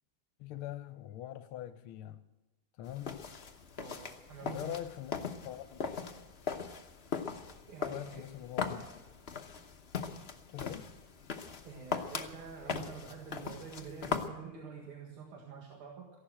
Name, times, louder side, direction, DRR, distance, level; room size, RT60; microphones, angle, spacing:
voice 1, 0.4-2.2 2.8-3.2 4.4-5.9 7.8-9.1 10.5-10.9, left 12 dB, 80° left, 1.5 m, -43 dB
sound 1, 2.8-14.3, left 6 dB, 40° left, 0.9 m, -40 dB
voice 2, 3.8-4.8 7.5-8.2 11.6-16.1, right 6 dB, 80° right, 2.7 m, -47 dB
15.0 x 11.5 x 7.7 m
omnidirectional pair, 2.4 m